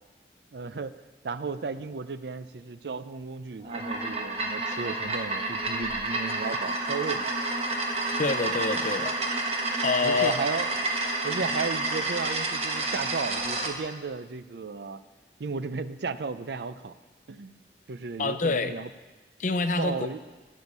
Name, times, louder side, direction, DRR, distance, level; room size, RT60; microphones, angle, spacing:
voice 1, 0.5-0.9 1.2-7.3 10.0-10.9 11.2-15.0 15.4-16.9 17.3-17.6 17.9-18.9 19.8-20.2, right 4 dB, 75° right, 13 dB, 0.5 m, -34 dB
sound 1, 3.6-13.7, right 2 dB, 35° right, 1.3 m, -29 dB
voice 2, 8.2-9.2 9.8-10.4 18.2-18.7 19.4-20.1, left 3 dB, 45° left, 10 dB, 0.6 m, -26 dB
19.0 x 6.4 x 5.4 m, 1.2 s
head